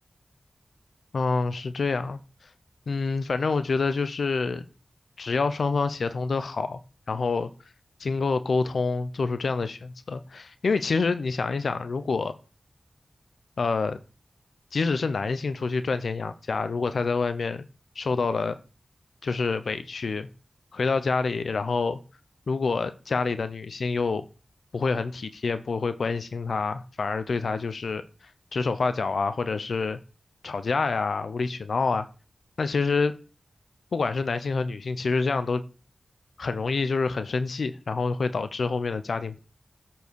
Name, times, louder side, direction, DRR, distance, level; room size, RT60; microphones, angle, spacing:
voice 1, 1.1-2.2 2.9-4.7 5.2-6.8 7.1-7.5 8.0-12.3 13.6-14.0 14.7-17.7 18.0-18.6 19.2-20.3 20.7-22.0 22.5-24.2 24.7-28.0 28.5-30.0 30.4-32.1 32.6-33.2 33.9-35.6 36.4-39.4, left 4 dB, 80° left, 0.5 m, -27 dB
8.4 x 4.5 x 4.6 m
cardioid pair, 50°, 0 cm